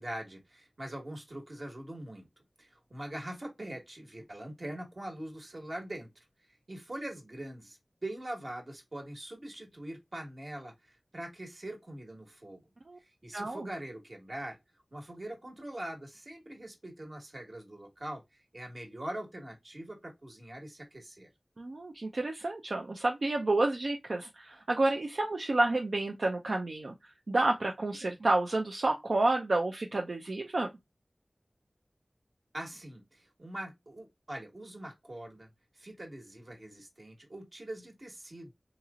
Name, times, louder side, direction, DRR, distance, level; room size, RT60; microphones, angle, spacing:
voice 1, 0.0-2.3 2.6-6.1 6.7-12.7 13.0-14.6 14.9-21.3 32.5-35.5 35.7-38.5, right 1 dB, 55° right, 1.4 m, -43 dB
voice 2, 13.3-13.7 21.6-30.7, right 2 dB, 80° right, 0.5 m, -30 dB
3.9 x 2.9 x 2.3 m
wide cardioid pair, 50°, 0 cm